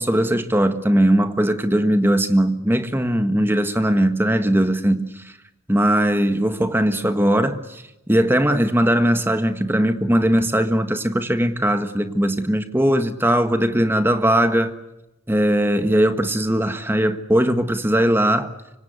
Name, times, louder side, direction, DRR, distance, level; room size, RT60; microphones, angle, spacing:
voice 1, 0.0-5.2 5.7-7.8 8.1-14.7 15.3-18.5, right 1 dB, 10° right, 9 dB, 1.5 m, -19 dB
25.5 x 25.0 x 8.3 m, 0.92 s
head